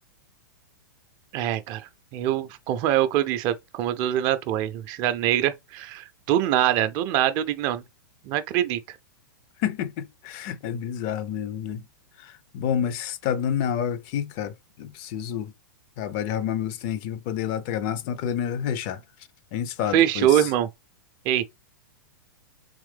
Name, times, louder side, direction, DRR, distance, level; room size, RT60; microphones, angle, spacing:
voice 1, 1.3-1.8 2.1-7.8 8.2-8.8 19.9-20.7 21.3-21.4, right 11 dB, 40° right, 0.5 m, -23 dB
voice 2, 9.6-11.8 12.5-14.5 14.8-15.5 16.0-19.0 19.5-20.3, left 9 dB, 40° left, 0.5 m, -28 dB
3.6 x 3.1 x 3.3 m
figure-of-eight pair, 105°, 11 cm